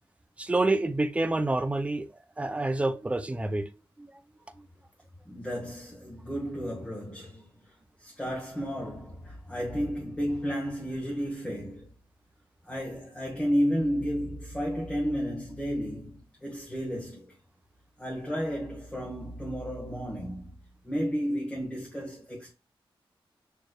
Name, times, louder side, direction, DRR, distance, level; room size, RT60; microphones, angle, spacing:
voice 1, 0.4-2.1 2.4-3.7 4.0-4.1, right 2 dB, 15° right, 0.4 m, -27 dB
voice 2, 5.3-11.9 12.6-17.4 18.0-20.5 20.8-22.5, equal, 10° left, 1.1 m, -32 dB
6.5 x 3.0 x 2.3 m
wide cardioid pair, 130°, 9 cm